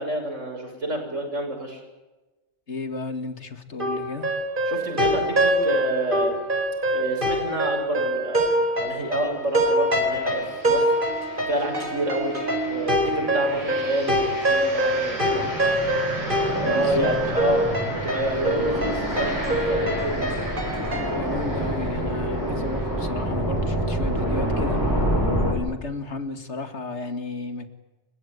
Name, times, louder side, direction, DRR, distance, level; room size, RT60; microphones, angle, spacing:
voice 1, 0.0-1.8 4.7-6.4 6.9-10.9 11.5-12.4 12.6-15.5 16.5-20.4, right 1 dB, 85° right, 3 dB, 6.8 m, -28 dB
voice 2, 2.7-4.3 16.6-17.1 21.1-24.8 25.4-27.7, left 3 dB, 65° left, 9 dB, 2.5 m, -33 dB
sound 1, 3.8-21.2, right 1 dB, 45° right, 4.7 m, -25 dB
sound 2, 10.3-10.5 11.1-25.5, equal, 15° right, 7.8 m, -28 dB
29.5 x 16.5 x 9.5 m, 1.1 s
omnidirectional pair, 1.2 m